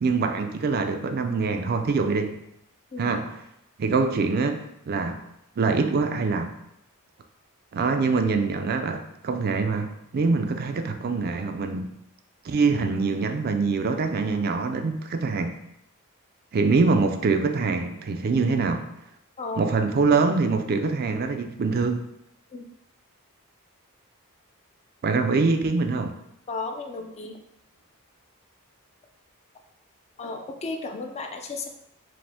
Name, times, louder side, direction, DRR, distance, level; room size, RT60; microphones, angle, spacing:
voice 1, 0.0-2.4 3.0-3.3 3.8-5.2 5.6-6.5 7.7-11.9 12.4-15.5 16.5-18.8 19.6-22.0 25.0-26.1, right 4 dB, 45° right, 6 dB, 0.4 m, -24 dB
voice 2, 19.4-19.7 22.5-22.7 26.5-27.4 30.2-31.7, left 3 dB, 30° left, 4 dB, 0.4 m, -34 dB
5.0 x 2.1 x 3.4 m, 0.79 s
head